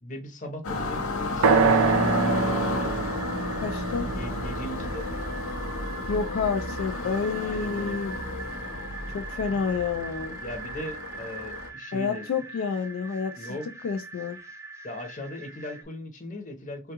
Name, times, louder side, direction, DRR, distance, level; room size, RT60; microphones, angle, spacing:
voice 1, 0.0-2.5 4.1-5.1 7.4-8.0 9.3-9.6 10.4-12.3 13.4-13.7 14.8-16.9, left 1 dB, 40° left, 0.8 m, -39 dB
sound 1, 0.6-11.7, left 2 dB, 90° left, 0.7 m, -32 dB
sound 2, 1.4-5.4, right 4 dB, 80° right, 0.4 m, -25 dB
sound 3, 2.1-15.8, right 4 dB, 15° right, 0.4 m, -42 dB
voice 2, 3.6-4.1 6.1-8.1 9.1-10.4 11.9-13.6 13.8-14.4, left 5 dB, 70° left, 0.3 m, -29 dB
3.5 x 2.3 x 2.8 m
head